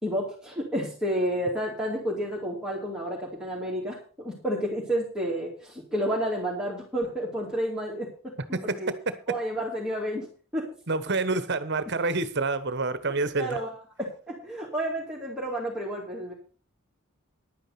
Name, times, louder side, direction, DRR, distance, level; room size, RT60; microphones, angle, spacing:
voice 1, 0.0-8.3 8.6-8.9 9.3-10.3 10.5-10.6 13.4-13.7 14.0-16.3, equal, 5° right, -5 dB, 2.5 m, -30 dB
voice 2, 8.5-9.4 10.9-13.6, right 3 dB, 50° right, 13 dB, 1.2 m, -28 dB
11.0 x 9.1 x 5.8 m, 0.38 s
head